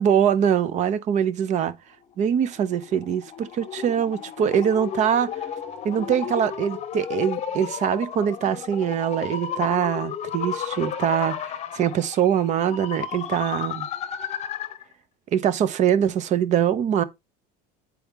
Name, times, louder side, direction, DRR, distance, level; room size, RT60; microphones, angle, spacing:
voice 1, 0.0-1.7 2.2-5.3 5.8-13.9 15.3-17.0, right 9 dB, 40° right, 0.7 m, -23 dB
sound 1, 2.1-14.8, left 8 dB, 35° left, 0.9 m, -33 dB
8.5 x 4.7 x 3.4 m
cardioid pair, 135°, 19 cm